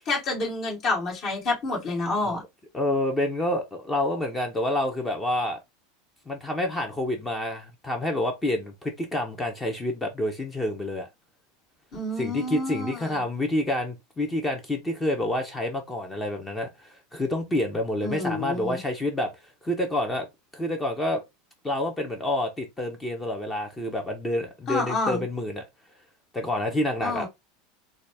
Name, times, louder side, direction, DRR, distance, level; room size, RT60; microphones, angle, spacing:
voice 1, 0.1-2.4 11.9-13.2 18.0-18.8 24.7-25.2 27.0-27.3, left 2 dB, 45° left, 2.2 m, -28 dB
voice 2, 2.7-5.6 6.3-11.1 12.2-20.3 20.5-21.2 21.6-25.6 26.3-27.2, left 1 dB, 15° left, 0.7 m, -28 dB
3.9 x 2.3 x 3.3 m
supercardioid pair, 130°, 0 cm